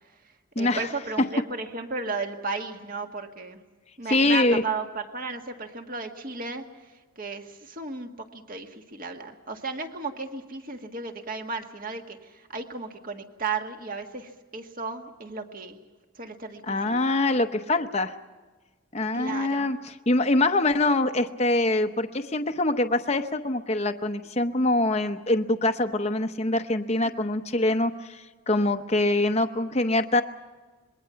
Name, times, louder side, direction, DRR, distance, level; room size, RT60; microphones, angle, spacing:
voice 1, 0.6-3.6 4.0-6.6 7.2-15.8 16.2-17.0 19.1-19.7 27.0-27.2, right 3 dB, 40° right, 5 dB, 1.8 m, -34 dB
voice 2, 4.1-4.6 16.7-18.1 18.9-30.2, left 2 dB, 30° left, 6 dB, 0.8 m, -24 dB
26.5 x 21.5 x 5.8 m, 1.3 s
head